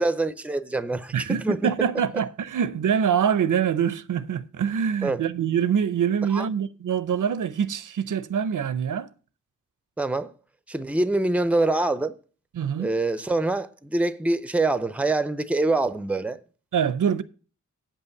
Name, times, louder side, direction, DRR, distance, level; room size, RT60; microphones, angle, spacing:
voice 1, 0.0-1.6 5.0-5.2 6.3-6.5 10.0-10.3 10.7-12.2 12.8-16.4, right 2 dB, 5° right, 0.5 m, -25 dB
voice 2, 1.1-9.1 12.5-12.9 16.7-17.2, right 8 dB, 90° right, 0.6 m, -24 dB
8.6 x 5.6 x 7.0 m
wide cardioid pair, 130°, 31 cm